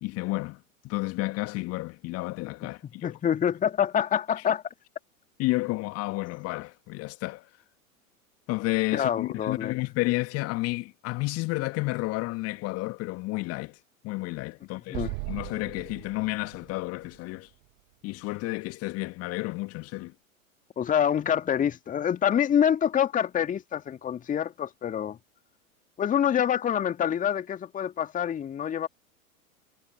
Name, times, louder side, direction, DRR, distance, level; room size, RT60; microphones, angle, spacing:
voice 1, 0.0-3.2 5.4-7.5 8.5-13.8 14.0-17.5 18.0-20.1, left 22 dB, 35° left, 2.1 m, -31 dB
voice 2, 3.0-4.6 8.9-9.7 14.9-15.1 20.8-25.2 26.0-28.9, left 9 dB, 20° left, 2.1 m, -26 dB
Explosion, 14.9-18.2, right 40 dB or more, 40° right, 2.4 m, -39 dB
figure-of-eight pair, 95°, 43 cm